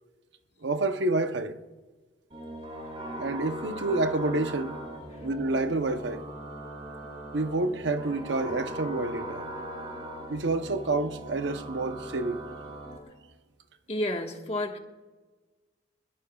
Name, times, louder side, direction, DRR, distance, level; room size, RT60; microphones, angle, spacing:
voice 1, 0.6-1.5 3.2-4.8 5.2-6.2 7.3-9.5 10.3-12.4, right 2 dB, 80° right, 0.8 m, -28 dB
sound 1, 2.3-13.0, right 1 dB, 35° right, 4.5 m, -40 dB
voice 2, 13.9-14.8, left 1 dB, 35° left, 1.5 m, -31 dB
23.5 x 21.5 x 2.4 m
head